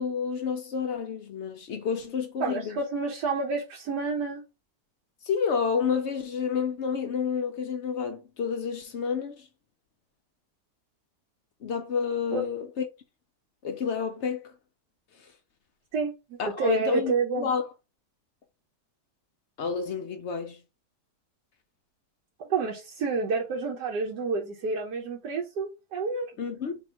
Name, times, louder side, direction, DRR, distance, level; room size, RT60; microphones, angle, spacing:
voice 1, 0.0-2.8 5.2-9.5 11.6-12.8 13.6-14.5 16.4-17.6 19.6-20.6 26.4-26.8, left 6 dB, 65° left, 0.7 m, -29 dB
voice 2, 2.4-4.4 12.3-12.5 15.9-17.5 22.5-26.3, right 4 dB, 90° right, 1.4 m, -29 dB
3.4 x 2.4 x 4.3 m
omnidirectional pair, 1.7 m